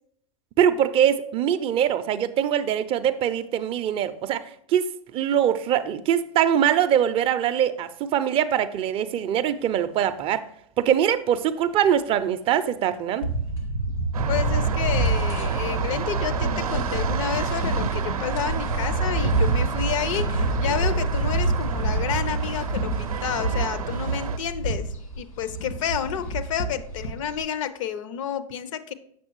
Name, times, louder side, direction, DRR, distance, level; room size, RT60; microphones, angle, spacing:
voice 1, 0.6-10.4 10.8-13.3, right 9 dB, 30° right, 11 dB, 0.4 m, -23 dB
sound 1, 13.2-27.4, right 2 dB, 80° left, 1.7 m, -28 dB
sound 2, 14.1-24.4, right 6 dB, 85° right, 0.5 m, -29 dB
voice 2, 14.3-24.9 25.2-28.9, left 9 dB, 60° left, 13 dB, 0.6 m, -30 dB
7.3 x 6.1 x 3.0 m, 0.68 s
hypercardioid pair, 100°, 18 cm